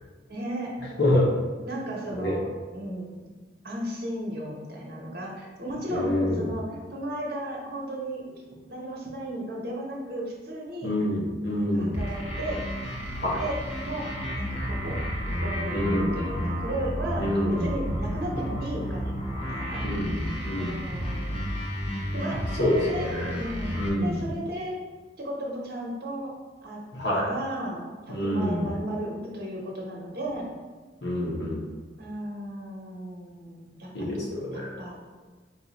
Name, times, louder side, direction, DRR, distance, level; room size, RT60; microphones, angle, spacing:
voice 1, 0.3-0.7 1.7-3.3 3.6-8.2 8.7-10.9 11.6-12.6 13.4-13.6 13.8-14.1 14.3-15.0 15.3-19.1 19.5-19.8 20.5-21.5 22.1-23.7 24.0-24.8 25.2-26.3 26.6-26.8 27.1-30.5 32.0-34.2 34.5-34.9, right 1 dB, 60° right, -2 dB, 1.0 m, -35 dB
voice 2, 5.9-6.5 10.8-12.0 13.2-13.4 15.7-16.2 17.2-17.6 19.8-20.8 22.6-23.4 23.7-24.3 26.9-27.3 28.1-28.7 31.0-31.7 33.9-34.8, left 1 dB, 70° left, -4 dB, 1.1 m, -27 dB
sound 1, 11.9-23.9, equal, 35° left, 0.8 m, -32 dB
4.7 x 2.4 x 4.1 m, 1.4 s
head